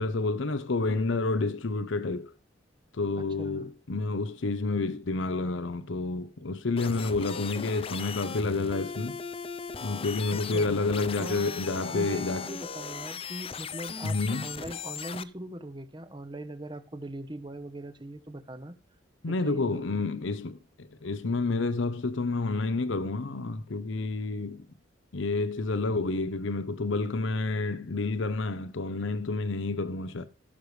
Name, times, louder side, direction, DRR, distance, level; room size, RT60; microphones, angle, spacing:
voice 1, 0.0-2.3 2.9-9.2 9.8-12.4 14.0-14.5 19.2-24.7 25.1-30.3, left 3 dB, 70° left, 0.7 m, -29 dB
voice 2, 3.2-3.7 10.3-10.7 11.2-18.7 19.3-20.0, right 1 dB, 25° right, 1.0 m, -40 dB
sound 1, 6.8-15.2, left 6 dB, 30° left, 0.5 m, -38 dB
16.5 x 6.8 x 3.2 m
head